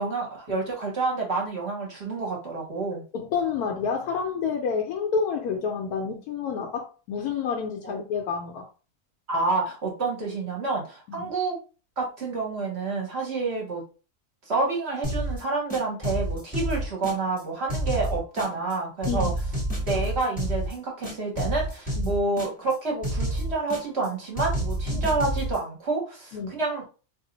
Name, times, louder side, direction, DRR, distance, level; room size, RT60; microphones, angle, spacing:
voice 1, 0.0-3.0 7.8-7.9 9.3-11.6 12.0-13.8 14.5-19.3 19.9-26.9, right 3 dB, 50° right, 0.9 m, -28 dB
voice 2, 3.1-8.7 11.1-11.3 19.1-19.3 22.0-22.1 24.9-25.0 26.3-26.6, left 6 dB, 80° left, 1.1 m, -29 dB
sound 1, 15.0-15.4 15.7-17.4 17.7-18.7 19.0-20.7 21.0-22.7 23.0-24.1 24.4-25.6, right 1 dB, 10° left, 0.6 m, -29 dB
2.7 x 2.0 x 3.7 m
omnidirectional pair, 1.6 m